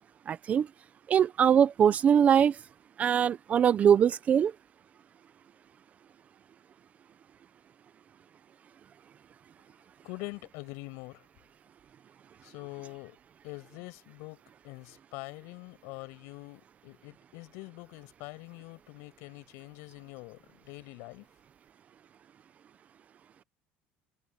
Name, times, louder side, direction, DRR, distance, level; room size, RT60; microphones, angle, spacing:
voice 1, 0.3-0.7 1.1-2.6 3.0-4.5, right 8 dB, 30° right, 0.7 m, -22 dB
voice 2, 10.0-11.2 12.4-13.2 13.4-21.3, left 26 dB, 75° left, 6.0 m, -44 dB
cardioid pair, 150°, 5 cm